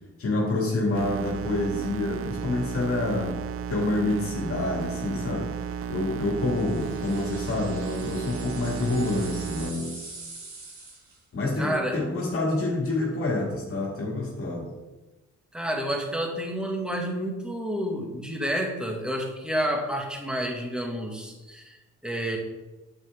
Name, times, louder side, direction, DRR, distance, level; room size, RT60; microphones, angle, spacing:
voice 1, 0.2-3.4 3.7-5.5 5.9-10.2 11.3-14.7, left 2 dB, 45° left, -1 dB, 2.1 m, -27 dB
sound 1, 0.9-9.7, right 7 dB, 50° right, 0.6 m, -34 dB
sound 2, 6.4-11.2, right 3 dB, 70° right, 3.1 m, -44 dB
voice 2, 11.6-12.0 15.5-22.4, equal, 5° right, 1 dB, 1.8 m, -30 dB
8.5 x 8.4 x 3.6 m, 1.1 s
cardioid pair, 90°, 30 cm